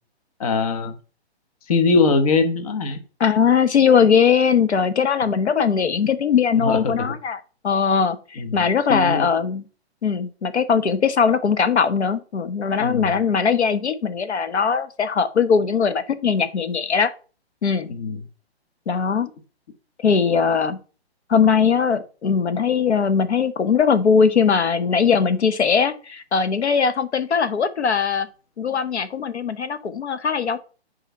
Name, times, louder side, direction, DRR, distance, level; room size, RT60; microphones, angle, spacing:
voice 1, 0.4-0.9 1.7-3.0 6.6-6.9 8.4-8.6 8.9-9.3 12.8-13.1 17.9-18.2, left 4 dB, 35° left, 8 dB, 1.0 m, -21 dB
voice 2, 3.2-9.6 10.0-17.1 17.6-17.9 18.9-19.3 20.0-20.8 21.3-28.3 28.6-30.6, left 6 dB, 85° left, 10 dB, 1.4 m, -20 dB
7.8 x 4.8 x 5.5 m, 0.36 s
hypercardioid pair, 165°, 33 cm